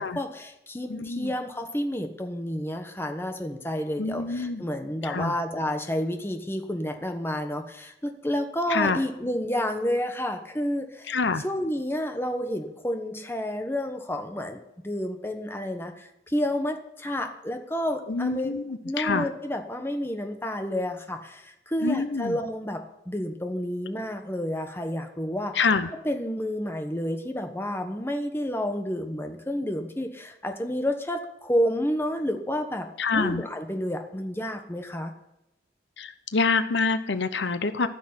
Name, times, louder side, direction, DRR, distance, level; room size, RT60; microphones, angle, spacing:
voice 1, 0.0-11.1 11.4-18.5 18.8-25.6 26.0-32.9 33.1-35.1 37.8-37.9, equal, 10° left, 5 dB, 1.1 m, -30 dB
voice 2, 0.9-1.3 4.0-4.7 5.0-5.4 8.7-9.0 11.1-11.4 18.1-19.3 21.8-22.4 25.5-25.9 33.0-33.4 36.0-37.9, left 4 dB, 70° left, 11 dB, 0.8 m, -26 dB
14.0 x 6.3 x 9.7 m, 0.87 s
head